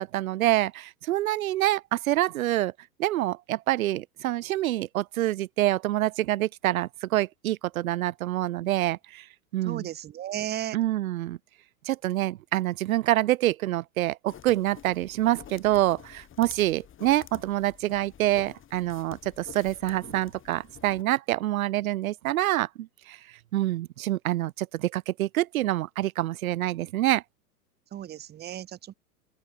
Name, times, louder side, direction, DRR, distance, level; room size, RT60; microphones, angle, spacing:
voice 1, 0.0-2.7 3.0-9.2 9.5-9.9 10.7-11.4 11.8-23.2 23.5-27.2, right 15 dB, 60° right, 1.6 m, -26 dB
voice 2, 9.6-10.8 27.9-28.9, right 11 dB, 20° right, 1.3 m, -34 dB
sound 1, 14.3-21.0, left 10 dB, 25° left, 7.9 m, -49 dB
open air
hypercardioid pair, 105°, 48 cm